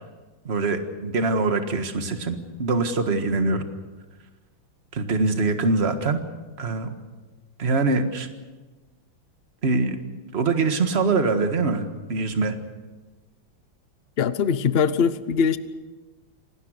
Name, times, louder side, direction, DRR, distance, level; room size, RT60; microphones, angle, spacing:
voice 1, 0.5-3.7 4.9-6.2 6.6-6.9 7.6-8.3 9.6-10.0 10.3-11.8 12.1-12.6, right 3 dB, 35° right, 7 dB, 1.7 m, -23 dB
voice 2, 14.2-15.6, left 6 dB, 85° left, 13 dB, 0.5 m, -21 dB
27.0 x 19.0 x 6.6 m, 1.3 s
omnidirectional pair, 2.2 m